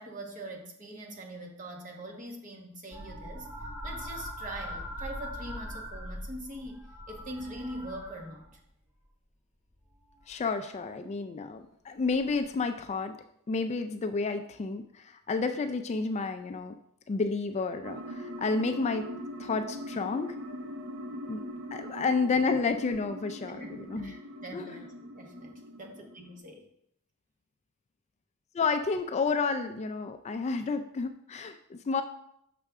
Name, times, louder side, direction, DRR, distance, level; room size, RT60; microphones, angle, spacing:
voice 1, 0.0-3.5 3.8-8.6 23.5-26.6, right 1 dB, 35° right, 2 dB, 1.2 m, -43 dB
sound 1, 2.9-8.7 9.9-10.4 12.2-12.3, equal, 15° right, 1.2 m, -41 dB
voice 2, 10.3-13.2 13.5-16.8 17.1-19.1 19.4-20.4 21.3-21.4 21.7-24.1 24.5-24.8 28.5-32.0, left 4 dB, 30° left, 8 dB, 0.3 m, -30 dB
sound 2, 17.8-26.4, equal, 60° right, 0.8 m, -41 dB
6.5 x 5.9 x 3.5 m, 0.74 s
head